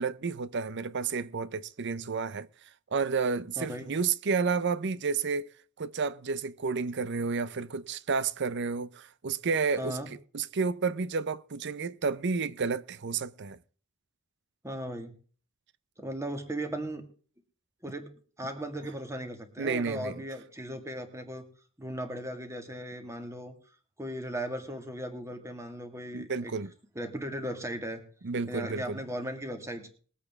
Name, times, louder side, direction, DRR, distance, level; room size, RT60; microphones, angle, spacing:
voice 1, 0.0-2.5 2.9-5.5 5.8-10.0 10.3-13.6 19.6-20.2 26.1-26.7 28.2-29.0, right 5 dB, 60° right, 0.6 m, -31 dB
voice 2, 3.6-3.9 9.8-10.1 14.6-15.1 16.0-17.0 17.8-18.1 18.4-21.5 21.8-23.5 24.0-26.5 27.0-28.0 28.5-29.9, right 1 dB, 15° right, 1.9 m, -37 dB
21.0 x 8.3 x 3.6 m
head